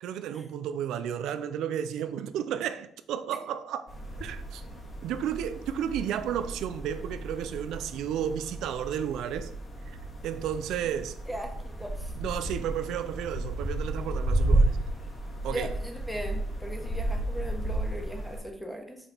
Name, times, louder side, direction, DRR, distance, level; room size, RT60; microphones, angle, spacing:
voice 1, 0.0-3.8 4.2-4.6 5.0-9.5 10.2-11.1 12.2-14.8 15.4-15.7, right 9 dB, 85° right, 0.4 m, -32 dB
sound 1, 3.9-18.4, right 1 dB, 35° left, 2.1 m, -32 dB
voice 2, 11.3-12.1 15.5-19.0, right 1 dB, 5° left, 1.4 m, -38 dB
5.7 x 5.2 x 4.4 m
cardioid pair, 90°, 0 cm